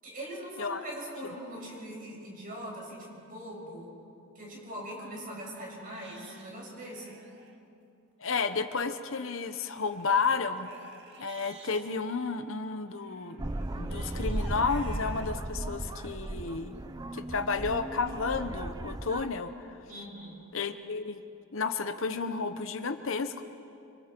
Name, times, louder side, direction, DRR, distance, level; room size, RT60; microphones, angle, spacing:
voice 1, 0.0-3.9 4.4-7.2 19.9-20.4, equal, 40° right, -3 dB, 7.0 m, -41 dB
Livestock farm animals working animals, 4.7-4.8 5.4-5.5 5.8-7.6 9.3-11.8 13.0-15.3 15.9-16.0 16.6-16.7, right 3 dB, 55° right, 2.0 m, -53 dB
voice 2, 8.2-10.7 11.2-13.4 13.8-16.7 17.1-19.8 20.5-21.2 21.5-23.4, left 4 dB, 60° left, 9 dB, 0.9 m, -32 dB
sound 1, 13.4-19.3, right 1 dB, 20° right, 0.5 m, -36 dB
30.0 x 25.5 x 4.5 m, 2.6 s
head